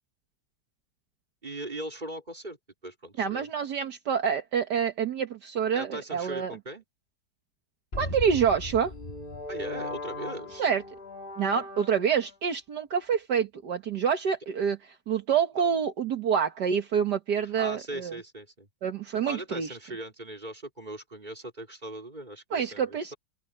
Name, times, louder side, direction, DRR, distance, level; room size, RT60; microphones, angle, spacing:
voice 1, 1.4-2.6 2.8-3.5 5.7-6.8 9.5-10.7 15.6-15.8 17.5-18.7 19.2-23.2, right 1 dB, 25° right, 4.3 m, -39 dB
voice 2, 3.2-6.5 8.0-8.9 10.6-10.8 11.4-14.8 15.1-18.2 18.8-19.8 22.5-23.1, right 7 dB, 65° right, 1.9 m, -27 dB
sound 1, 7.9-12.3, left 2 dB, 30° left, 2.6 m, -38 dB
open air
omnidirectional pair, 1.9 m